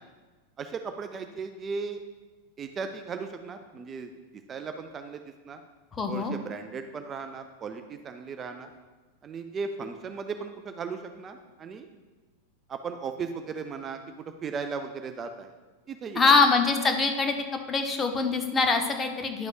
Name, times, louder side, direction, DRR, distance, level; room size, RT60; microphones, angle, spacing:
voice 1, 0.6-2.0 2.6-4.1 4.5-5.6 6.1-8.7 9.2-11.9 12.7-15.5 15.9-16.3, right 5 dB, 25° right, 6 dB, 0.4 m, -36 dB
voice 2, 5.9-6.4 16.2-17.4 17.7-19.5, left 4 dB, 20° left, 5 dB, 0.7 m, -23 dB
10.5 x 6.2 x 2.4 m, 1.3 s
figure-of-eight pair, 90°, 0 cm